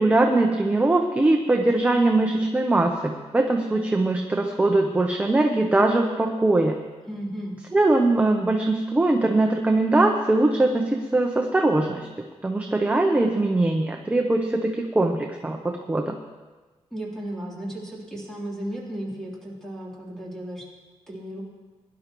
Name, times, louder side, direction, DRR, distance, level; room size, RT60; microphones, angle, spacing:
voice 1, 0.0-6.8 7.7-12.1 12.4-16.1, right 2 dB, 10° right, 2 dB, 0.7 m, -21 dB
voice 2, 7.1-7.6 16.9-20.6 21.1-21.4, right 1 dB, 5° left, -5 dB, 3.2 m, -34 dB
21.5 x 11.5 x 3.0 m, 1.3 s
wide cardioid pair, 175°, 12 cm